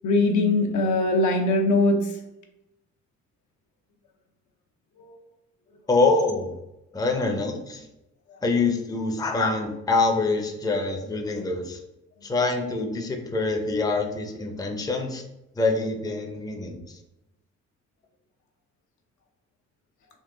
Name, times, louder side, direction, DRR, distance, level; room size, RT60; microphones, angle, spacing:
voice 1, 0.0-2.0 5.0-5.1, left 2 dB, 75° left, 2 dB, 0.8 m, -21 dB
voice 2, 5.9-6.5 6.9-7.8 8.4-11.8 12.2-15.2 15.6-16.8, left 3 dB, 10° left, 3 dB, 0.6 m, -25 dB
3.8 x 2.4 x 3.7 m, 0.93 s
cardioid pair, 90°, 30 cm